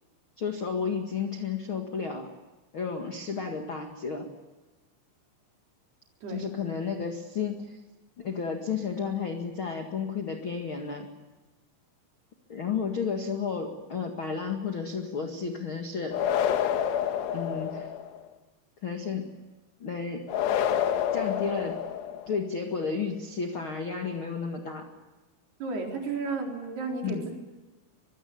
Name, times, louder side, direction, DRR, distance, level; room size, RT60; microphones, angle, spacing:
voice 1, 0.4-2.3 2.7-4.3 6.3-7.8 8.2-11.1 12.5-16.2 17.3-17.9 18.8-19.3 19.8-20.2 21.1-21.8 22.3-24.9 27.0-27.2, left 5 dB, 50° left, 4 dB, 1.6 m, -32 dB
sound 1, 16.1-18.2 20.3-22.4, left 9 dB, 90° left, 3.9 m, -28 dB
voice 2, 25.6-27.3, right 4 dB, 60° right, 1 dB, 6.0 m, -33 dB
24.5 x 22.5 x 7.1 m, 1.2 s
omnidirectional pair, 5.4 m